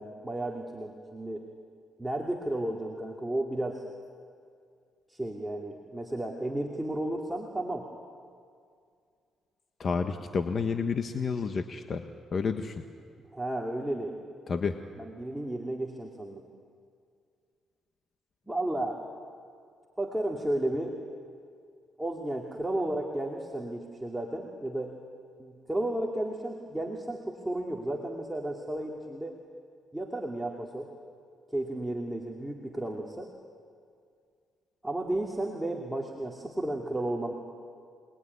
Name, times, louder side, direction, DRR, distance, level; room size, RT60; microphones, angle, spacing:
voice 1, 0.0-1.5 2.0-3.8 5.1-7.9 13.3-14.2 15.0-16.5 18.5-19.0 20.0-20.9 22.0-24.9 25.4-29.4 29.9-30.9 31.5-33.3 34.8-37.3, right 1 dB, 5° right, -1 dB, 2.6 m, -33 dB
voice 2, 9.8-12.0 12.3-12.8 14.5-14.8, left 5 dB, 45° left, 6 dB, 1.3 m, -30 dB
28.5 x 21.0 x 9.7 m, 2.3 s
cardioid pair, 90°, 0 cm